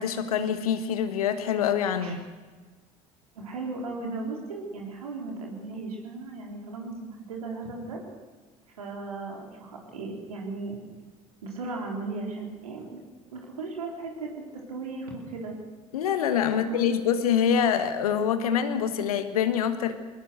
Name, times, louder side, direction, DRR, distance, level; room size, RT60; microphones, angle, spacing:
voice 1, 0.0-2.2 15.9-19.9, left 8 dB, 80° left, 9 dB, 1.6 m, -25 dB
voice 2, 3.3-8.0 8.8-10.8 11.4-13.0 13.3-15.6 16.5-16.8, right 3 dB, 85° right, 0 dB, 4.1 m, -36 dB
20.5 x 20.0 x 6.6 m, 1.4 s
hypercardioid pair, 65°, 18 cm